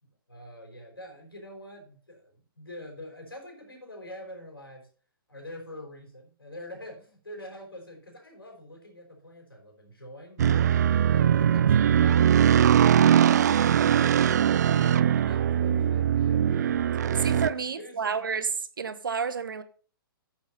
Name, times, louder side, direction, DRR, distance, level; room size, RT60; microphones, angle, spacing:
voice 1, 0.0-4.9 5.3-10.7 11.0-14.3 14.7-18.2, left 1 dB, 75° left, 4.9 m, -45 dB
sound 1, 10.4-17.5, right 9 dB, 50° right, 0.4 m, -21 dB
voice 2, 17.2-18.5 18.8-19.6, right 5 dB, 65° right, 1.0 m, -30 dB
9.0 x 7.2 x 5.5 m
figure-of-eight pair, 120°, 12 cm